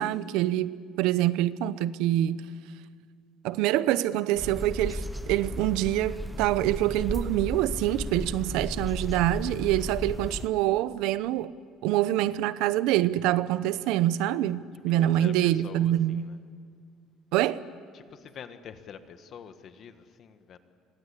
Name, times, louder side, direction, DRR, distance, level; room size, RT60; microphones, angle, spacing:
voice 1, 0.0-2.4 3.4-11.5 11.8-16.3 17.3-17.6, right 13 dB, 80° right, 0.8 m, -26 dB
sound 1, 4.4-10.5, equal, ahead, 1.0 m, -35 dB
voice 2, 14.9-16.4 17.9-20.6, left 7 dB, 40° left, 1.6 m, -46 dB
28.5 x 24.5 x 8.4 m
cardioid pair, 160°, 0 cm